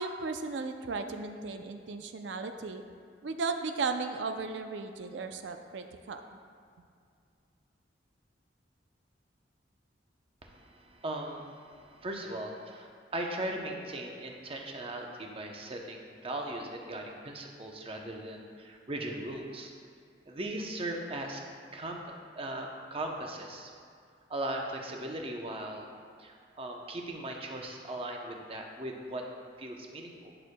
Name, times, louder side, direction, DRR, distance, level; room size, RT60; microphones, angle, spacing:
voice 1, 0.0-2.8 3.2-6.2, right 4 dB, 70° right, 7 dB, 0.5 m, -35 dB
voice 2, 10.4-19.7 20.3-21.4 21.7-23.7 24.3-25.9 26.2-29.3 29.6-30.3, right 1 dB, 30° right, 1 dB, 0.7 m, -38 dB
11.0 x 6.4 x 2.2 m, 2.3 s
head